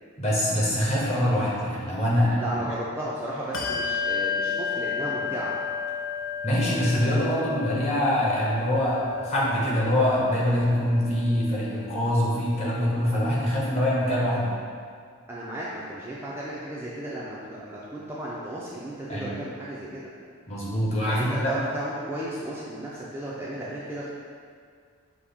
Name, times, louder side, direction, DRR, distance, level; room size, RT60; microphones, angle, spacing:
voice 1, 0.2-2.4 6.4-14.6 19.1-19.3 20.5-21.5, equal, 30° left, -6 dB, 0.9 m, -24 dB
voice 2, 2.4-5.6 15.3-20.1 21.1-24.1, right 1 dB, 10° right, -7 dB, 0.3 m, -34 dB
Bell, 3.5-13.5, left 6 dB, 60° left, 0.4 m, -33 dB
5.9 x 2.1 x 3.5 m, 2.1 s
head